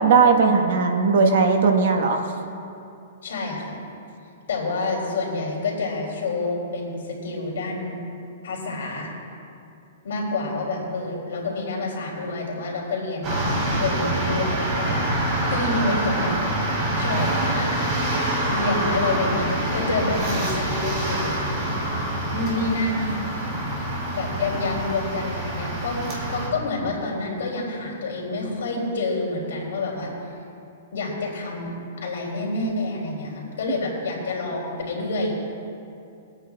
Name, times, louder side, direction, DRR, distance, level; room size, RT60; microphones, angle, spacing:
voice 1, 0.0-2.2, right 4 dB, 65° right, 4 dB, 1.3 m, -18 dB
voice 2, 3.2-3.8 4.5-8.0 8.4-9.1 10.0-13.5 13.8-15.1 15.5-16.3 17.0-17.9 18.5-21.3 21.6-21.8 22.3-23.2 24.1-26.0 26.3-30.1 30.9-35.4, left 2 dB, 80° left, -1 dB, 2.8 m, -28 dB
sound 1, 13.2-26.5, right 1 dB, 30° right, 3.0 m, -26 dB
24.0 x 8.8 x 2.3 m, 2.6 s
hypercardioid pair, 160°, 0 cm